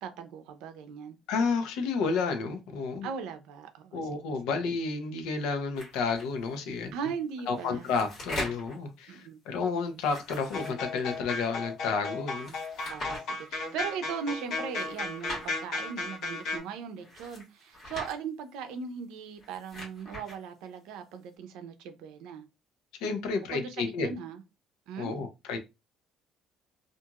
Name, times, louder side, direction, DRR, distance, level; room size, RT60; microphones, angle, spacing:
voice 1, 0.0-1.2 3.0-4.0 6.9-7.9 9.1-9.4 12.9-22.5 23.5-24.4 24.9-25.1, right 6 dB, 90° right, 0.5 m, -38 dB
voice 2, 1.3-3.1 3.9-6.9 7.5-12.5 23.0-24.1 25.0-25.6, left 4 dB, 85° left, 0.6 m, -31 dB
sound 1, 5.8-6.3 7.4-8.8 9.9-11.2 12.4-13.2 14.6-15.5 17.0-18.2 19.3-20.4, left 1 dB, 35° left, 1.6 m, -41 dB
sound 2, 10.5-16.6, left 3 dB, 55° left, 1.1 m, -35 dB
2.9 x 2.5 x 2.3 m
cardioid pair, 170°, 0 cm